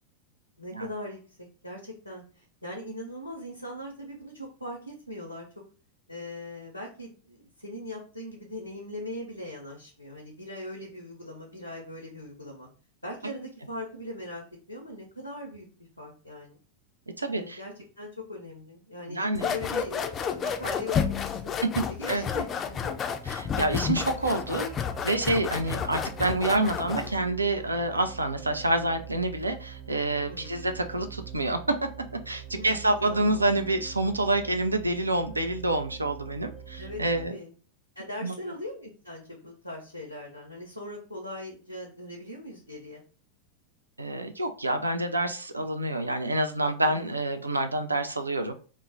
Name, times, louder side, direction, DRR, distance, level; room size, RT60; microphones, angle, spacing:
voice 1, 0.6-5.5 6.1-12.7 13.0-15.7 16.0-16.6 17.3-21.6 21.9-22.9 30.3-30.6 32.5-33.3 36.8-37.5 38.0-43.0 46.8-47.1, left 1 dB, 90° left, 1 dB, 0.5 m, -40 dB
voice 2, 17.2-17.6 19.1-19.4 22.1-22.2 23.3-24.7 25.0-31.9 32.3-37.4 38.2-38.3 44.0-48.5, right 2 dB, 80° right, 7 dB, 0.4 m, -27 dB
sound 1, 19.3-27.2, left 7 dB, 25° left, 0.3 m, -31 dB
sound 2, 22.9-37.3, right 9 dB, 55° right, 0.8 m, -44 dB
2.2 x 2.0 x 3.8 m, 0.38 s
figure-of-eight pair, 90°, 0 cm